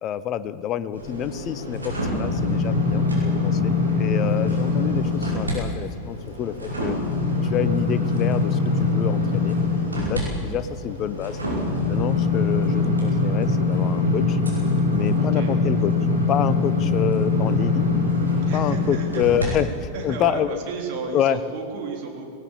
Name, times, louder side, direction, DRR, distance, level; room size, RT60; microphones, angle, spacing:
voice 1, 0.0-3.1 3.3-7.0 7.4-9.6 9.9-11.4 11.9-14.4 14.9-15.9 16.3-17.9 18.5-19.7 20.0-20.6 21.1-21.4, left 10 dB, 35° left, 14 dB, 0.9 m, -27 dB
sound 1, 0.9-5.6 6.0-19.5 19.9-20.1, left 3 dB, 80° right, 5.3 m, -23 dB
voice 2, 15.2-15.5 18.5-19.6 19.9-22.2, right 4 dB, 45° right, 2 dB, 3.7 m, -33 dB
18.5 x 18.5 x 8.3 m, 2.5 s
figure-of-eight pair, 90°, 0 cm